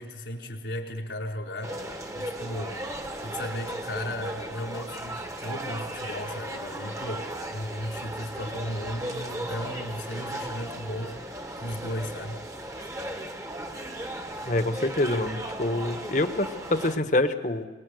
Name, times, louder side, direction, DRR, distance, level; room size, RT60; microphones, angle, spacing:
voice 1, 0.0-1.8 2.1-2.8 3.2-12.4, left 1 dB, 90° left, 1 dB, 4.2 m, -35 dB
sound 1, 1.6-17.0, right 1 dB, 20° right, 1.4 m, -36 dB
voice 2, 14.5-17.7, left 2 dB, 45° left, 8 dB, 1.4 m, -26 dB
23.5 x 21.5 x 7.9 m, 1.3 s
head